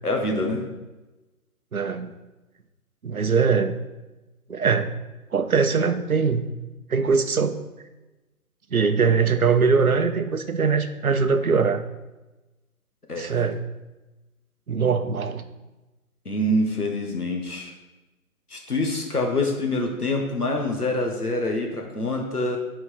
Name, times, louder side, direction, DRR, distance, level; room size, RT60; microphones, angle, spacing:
voice 1, 0.0-0.6 13.1-13.3 16.3-17.7 18.5-22.6, left 1 dB, 85° left, 2 dB, 1.7 m, -25 dB
voice 2, 1.7-2.1 3.0-3.8 4.5-4.9 5.3-6.5 6.9-7.6 8.7-11.8 13.2-13.6 14.7-15.4, right 5 dB, 70° right, 9 dB, 0.8 m, -22 dB
9.3 x 4.6 x 3.9 m, 1.1 s
figure-of-eight pair, 140°, 44 cm